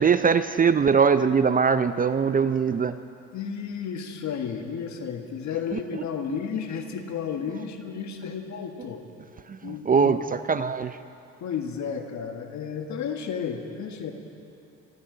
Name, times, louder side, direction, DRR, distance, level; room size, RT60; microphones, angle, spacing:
voice 1, 0.0-3.0 5.7-6.0 9.5-11.0, right 6 dB, 25° right, 12 dB, 0.5 m, -22 dB
voice 2, 3.3-9.0 9.6-10.2 11.4-14.1, left 7 dB, 60° left, 5 dB, 1.6 m, -32 dB
25.0 x 13.0 x 3.9 m, 2.6 s
supercardioid pair, 70°, 32 cm